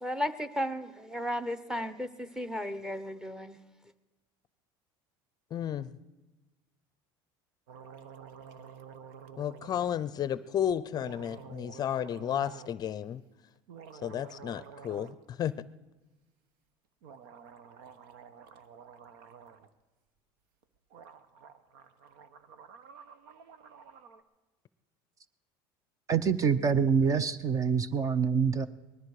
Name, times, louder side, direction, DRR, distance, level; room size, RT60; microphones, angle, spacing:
voice 1, 0.0-3.6, equal, 5° right, 12 dB, 0.9 m, -34 dB
voice 2, 5.5-5.9 9.4-13.2 14.0-15.1 15.4-15.5, left 10 dB, 35° left, 16 dB, 0.5 m, -32 dB
sound 1, 7.7-9.9 10.9-12.7 13.5-15.2 15.5-15.6 17.0-19.7 20.6-20.7 20.9-24.2, right 7 dB, 85° right, 1.1 m, -50 dB
voice 3, 26.1-28.7, right 6 dB, 30° right, 16 dB, 0.6 m, -26 dB
20.0 x 13.5 x 4.9 m, 1.1 s
supercardioid pair, 120°, 11 cm